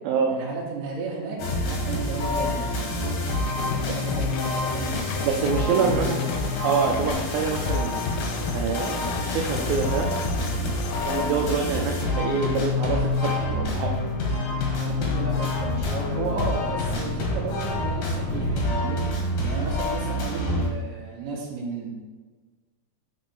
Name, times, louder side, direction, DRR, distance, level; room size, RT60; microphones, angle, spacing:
voice 1, 0.3-2.6 3.8-6.2 14.7-19.0 19.4-21.9, right 3 dB, 70° right, -5 dB, 3.0 m, -33 dB
sound 1, 1.4-20.7, left 2 dB, 70° left, 1.8 m, -27 dB
sound 2, 3.5-11.4, left 8 dB, 90° left, 2.8 m, -36 dB
voice 2, 5.2-8.0 8.5-9.0 9.2-10.1 11.0-13.9, right 5 dB, 90° right, 1 dB, 2.1 m, -26 dB
9.4 x 4.3 x 4.3 m, 1.3 s
omnidirectional pair, 5.1 m